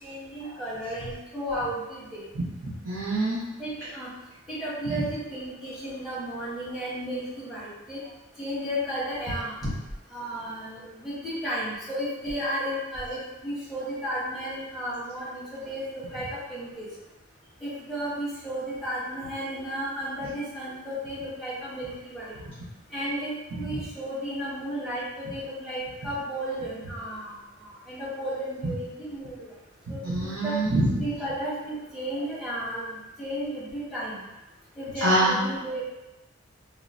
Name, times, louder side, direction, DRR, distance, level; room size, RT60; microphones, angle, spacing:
voice 1, 0.0-2.3 3.6-4.1 4.5-8.0 8.4-9.7 10.1-16.8 17.6-22.3 22.9-29.5 29.9-30.5 31.0-34.2 34.8-35.8, equal, ahead, -10 dB, 0.9 m, -33 dB
voice 2, 2.6-3.4 4.9-5.0 30.0-31.0 35.0-35.4, right 1 dB, 65° right, -8 dB, 0.6 m, -25 dB
2.9 x 2.1 x 2.4 m, 1.0 s
head